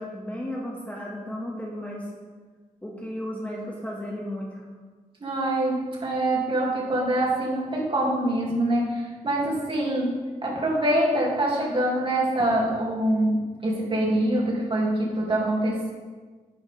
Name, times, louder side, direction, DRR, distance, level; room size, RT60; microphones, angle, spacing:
voice 1, 0.0-2.1 2.8-4.7, left 1 dB, 10° left, -3 dB, 1.9 m, -34 dB
voice 2, 5.2-15.9, right 1 dB, 35° right, -3 dB, 2.8 m, -25 dB
13.0 x 10.5 x 3.6 m, 1.4 s
wide cardioid pair, 135°, 15 cm